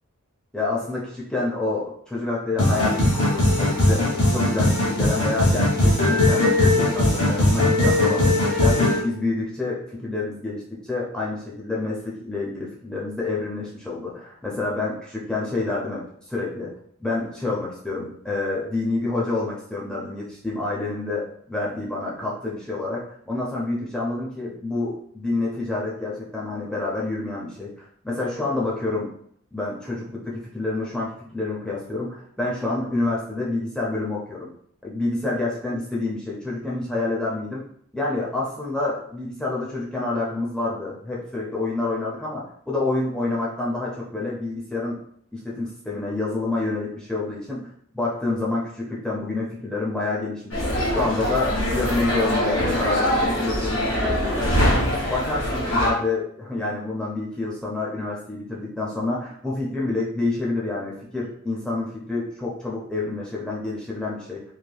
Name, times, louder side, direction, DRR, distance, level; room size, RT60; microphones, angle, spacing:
voice 1, 0.5-16.7 17.0-27.7 28.0-29.1 29.5-34.5 34.8-37.7 37.9-45.0 45.3-47.7 47.9-50.6 50.9-64.4, left 2 dB, 5° left, -5 dB, 0.5 m, -28 dB
sound 1, 2.6-9.0, left 1 dB, 35° left, 1.3 m, -19 dB
sound 2, 50.5-55.9, equal, 65° left, 1.3 m, -23 dB
3.2 x 2.8 x 2.2 m, 0.64 s
head